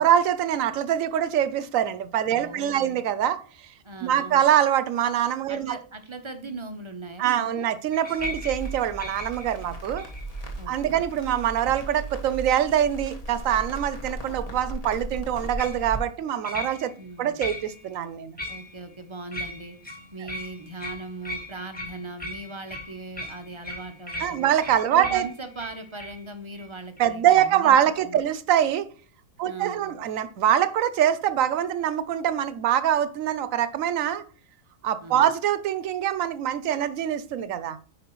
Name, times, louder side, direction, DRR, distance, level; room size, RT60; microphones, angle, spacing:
voice 1, 0.0-3.7 4.0-5.7 7.2-10.0 10.7-16.9 17.2-18.4 24.2-25.3 27.0-28.9 29.4-34.2 34.8-37.8, right 10 dB, 75° right, 14 dB, 1.0 m, -24 dB
voice 2, 2.3-3.0 3.8-4.4 5.5-7.7 10.6-11.0 17.0-17.4 18.5-19.8 20.1-24.5 24.9-27.8 28.0-28.2 29.4-30.0 35.0-35.3, right 3 dB, 30° right, 8 dB, 0.5 m, -39 dB
sound 1, 7.9-10.4 10.9-11.3 15.6-15.8 16.4-17.1 17.4-17.9 18.4-18.9 19.3-26.2 26.5-26.7 27.0-27.1, left 1 dB, 5° left, 1.7 m, -38 dB
Crackle, 8.2-16.0, right 1 dB, 30° left, 1.3 m, -37 dB
10.0 x 4.6 x 3.0 m, 0.42 s
omnidirectional pair, 1.5 m